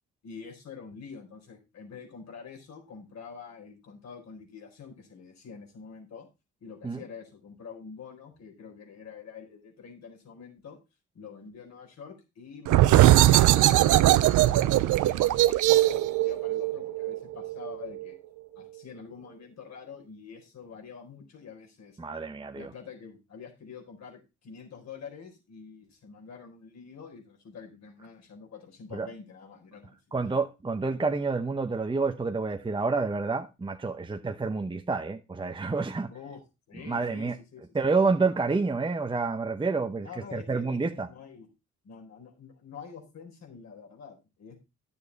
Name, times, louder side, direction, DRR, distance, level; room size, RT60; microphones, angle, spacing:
voice 1, 0.2-6.3 6.6-10.8 11.1-18.2 18.6-22.0 22.5-30.0 36.1-36.4 36.7-37.9 40.0-41.5 41.8-44.6, left 6 dB, 60° left, 4.3 m, -46 dB
sound 1, 12.7-18.1, right 15 dB, 80° right, 0.6 m, -21 dB
voice 2, 22.0-22.7 28.9-29.1 30.1-36.1 36.8-37.4 37.7-41.1, right 4 dB, 15° right, 0.8 m, -28 dB
11.0 x 7.1 x 4.1 m
cardioid pair, 90°, 30 cm